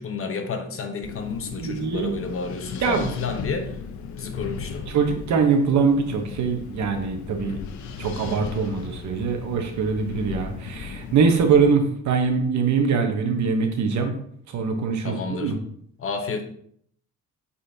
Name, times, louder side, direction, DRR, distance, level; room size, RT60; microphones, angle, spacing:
voice 1, 0.0-3.8 4.2-4.9 15.0-15.5 16.0-16.4, left 4 dB, 45° left, 6 dB, 1.0 m, -31 dB
Wind, 1.0-11.7, left 6 dB, 70° left, 0.7 m, -37 dB
voice 2, 1.6-2.1 2.8-3.1 4.9-7.6 8.0-14.1 14.5-15.5, right 5 dB, 70° right, 5 dB, 1.1 m, -23 dB
8.0 x 4.2 x 2.8 m, 0.65 s
cardioid pair, 90°, 30 cm